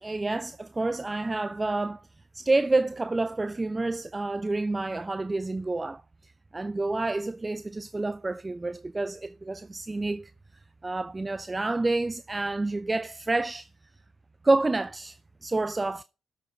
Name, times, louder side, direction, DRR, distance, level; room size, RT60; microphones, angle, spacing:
voice 1, 0.0-2.0 2.3-10.3 10.8-13.7 14.4-16.0, right 2 dB, 20° right, 0.4 m, -28 dB
12.0 x 5.2 x 4.0 m
hypercardioid pair, 50°, 0 cm